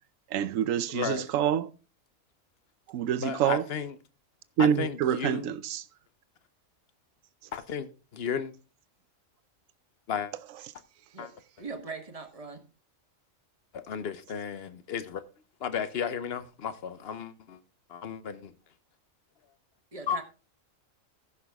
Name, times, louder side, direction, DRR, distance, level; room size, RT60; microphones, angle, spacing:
voice 1, 0.3-1.7 2.9-3.6 4.6-5.8, right 9 dB, 75° right, 1.0 m, -27 dB
voice 2, 0.9-1.3 3.2-4.0 4.6-5.5 7.5-8.5 10.1-10.3 11.2-11.3 13.7-15.2 15.6-17.6 17.9-18.5 20.1-20.2, left 7 dB, 55° left, 1.0 m, -34 dB
voice 3, 11.6-12.6 19.9-20.2, right 4 dB, 30° right, 1.2 m, -40 dB
15.0 x 6.0 x 3.5 m
omnidirectional pair, 1.4 m